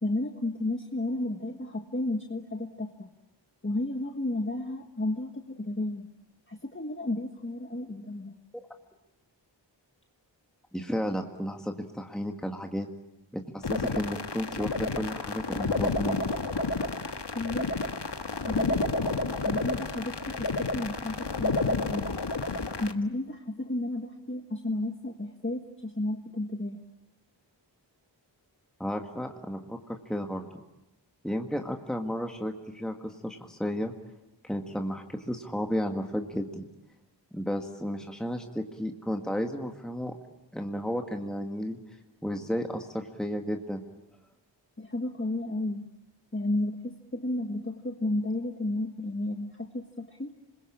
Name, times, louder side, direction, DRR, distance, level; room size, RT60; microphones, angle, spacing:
voice 1, 0.0-3.1 3.6-6.1 6.5-8.3 17.3-17.7 18.5-22.2 22.8-26.8 44.8-45.8 46.3-50.3, left 2 dB, 25° left, 4 dB, 1.5 m, -32 dB
voice 2, 10.7-12.9 13.3-16.2 28.8-30.6 31.2-33.9 34.4-36.7 37.3-40.1 40.5-41.8 42.2-43.8, equal, ahead, 3 dB, 1.8 m, -33 dB
sound 1, 13.6-22.9, left 3 dB, 65° left, 1.4 m, -30 dB
27.5 x 21.5 x 8.6 m, 0.95 s
wide cardioid pair, 45°, 44 cm